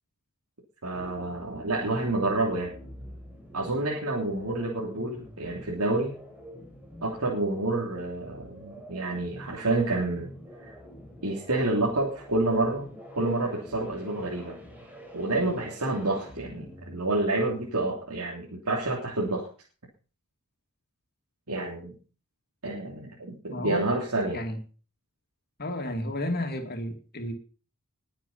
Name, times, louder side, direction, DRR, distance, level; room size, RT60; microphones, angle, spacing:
voice 1, 0.8-2.7 3.5-6.1 7.0-10.3 10.6-10.7 11.2-14.6 15.1-19.5 21.5-21.9 22.6-24.4, right 2 dB, 85° right, -2 dB, 3.2 m, -28 dB
sound 1, 0.9-18.1, equal, 10° right, 5.2 m, -47 dB
voice 2, 23.5-23.9 24.3-24.6 25.6-27.3, left 1 dB, 45° left, 5 dB, 2.5 m, -32 dB
20.5 x 7.5 x 5.7 m, 0.39 s
head